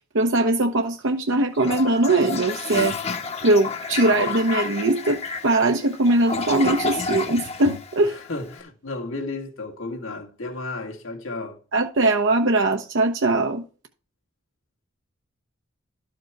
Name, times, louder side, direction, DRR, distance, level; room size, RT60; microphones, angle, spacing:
voice 1, 0.1-2.9 3.4-8.2 11.7-13.6, right 2 dB, 65° right, 0.8 m, -21 dB
Toilet flush, 1.5-8.5, left 4 dB, 30° left, 0.9 m, -30 dB
voice 2, 8.0-11.6, left 2 dB, 80° left, 1.7 m, -33 dB
12.5 x 5.1 x 4.5 m
head